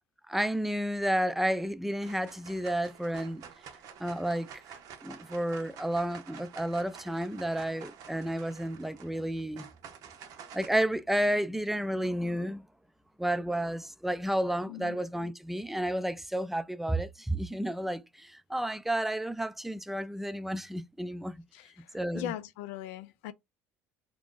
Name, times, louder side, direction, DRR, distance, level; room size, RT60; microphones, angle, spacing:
voice 1, 0.3-3.4 4.0-9.7 10.5-12.6 13.2-21.4 21.9-22.3, right 1 dB, 5° right, 0.3 m, -31 dB
sound 1, 1.3-1.7 2.0-10.8, right 7 dB, 60° right, 0.7 m, -49 dB
voice 2, 14.7-15.0 21.5-23.3, left 13 dB, 80° left, 0.4 m, -40 dB
2.9 x 2.5 x 3.6 m
supercardioid pair, 85°, 7 cm